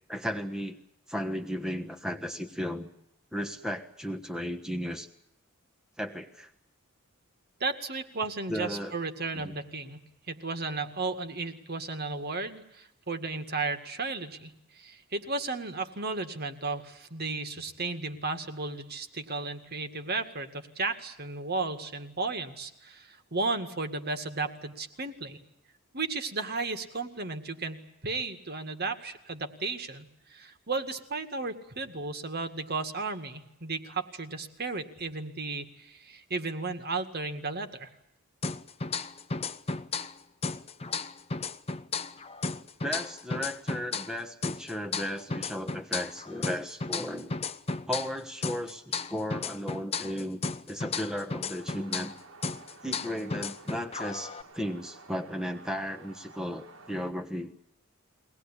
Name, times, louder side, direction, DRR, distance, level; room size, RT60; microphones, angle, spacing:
voice 1, 0.1-0.8 1.1-2.9 3.3-5.1 6.0-6.5 8.5-8.9 9.3-9.5 42.8-47.3 47.9-50.4 50.7-52.1 52.8-57.5, equal, 5° right, 4 dB, 1.3 m, -35 dB
voice 2, 7.6-25.4 25.9-37.9, right 3 dB, 50° right, 7 dB, 2.0 m, -34 dB
sound 1, 38.4-40.2 40.4-44.2 44.4-48.2 48.4-52.2 52.4-54.4, left 4 dB, 30° left, 0.8 m, -34 dB
sound 2, 51.5-57.1, right 3 dB, 70° right, 2.2 m, -52 dB
23.5 x 18.5 x 10.0 m, 0.83 s
head